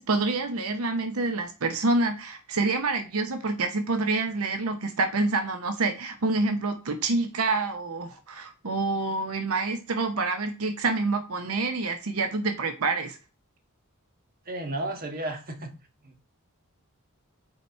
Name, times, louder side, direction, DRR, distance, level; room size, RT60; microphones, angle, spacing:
voice 1, 0.0-13.2, right 3 dB, 85° right, 0.8 m, -27 dB
voice 2, 14.4-15.7 16.0-16.2, right 1 dB, 45° right, 1.4 m, -33 dB
5.8 x 4.7 x 4.4 m
head